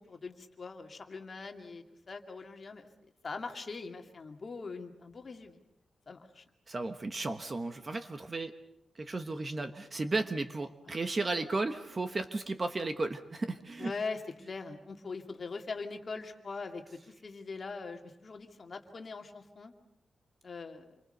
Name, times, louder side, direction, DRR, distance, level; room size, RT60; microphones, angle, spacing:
voice 1, 0.0-5.6 6.1-6.4 10.9-11.0 13.8-19.7 20.4-21.0, left 4 dB, 35° left, 4 dB, 2.3 m, -42 dB
voice 2, 6.7-8.5 8.9-13.9, right 3 dB, 25° right, 9 dB, 1.2 m, -34 dB
28.0 x 24.5 x 6.7 m, 0.80 s
wide cardioid pair, 175°, 0 cm